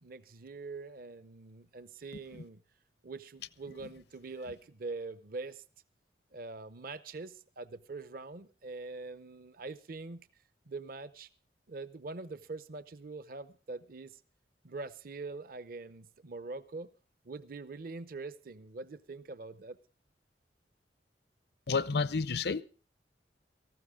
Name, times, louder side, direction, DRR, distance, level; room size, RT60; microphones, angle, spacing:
voice 1, 0.0-2.6 3.0-5.6 6.3-10.3 10.7-11.3 11.7-14.2 14.6-16.9 17.2-19.8, right 3 dB, 55° right, 0.7 m, -43 dB
voice 2, 21.7-22.6, left 4 dB, 65° left, 0.6 m, -31 dB
18.0 x 14.5 x 3.6 m
head